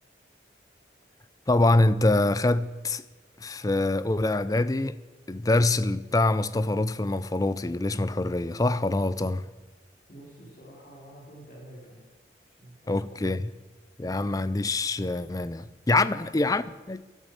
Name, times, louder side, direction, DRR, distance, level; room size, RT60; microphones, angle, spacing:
voice 1, 1.5-3.0 3.4-4.9 5.3-9.4 12.9-13.5 14.0-17.0, left 2 dB, 20° left, 0.4 m, -25 dB
voice 2, 10.1-12.1 12.5-13.4 16.1-16.2, right 1 dB, 50° left, 3.7 m, -48 dB
12.5 x 11.0 x 7.8 m
head